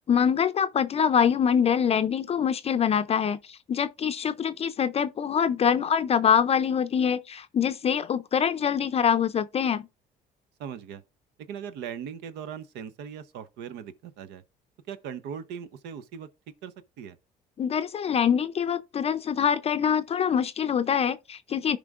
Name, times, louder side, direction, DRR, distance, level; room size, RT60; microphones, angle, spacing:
voice 1, 0.0-9.9 17.6-21.8, left 7 dB, 35° left, 0.5 m, -24 dB
voice 2, 10.6-11.0 11.4-14.4 14.9-16.3 16.6-17.2, right 8 dB, 85° right, 0.8 m, -39 dB
14.5 x 5.1 x 2.4 m
cardioid pair, 110°, 17 cm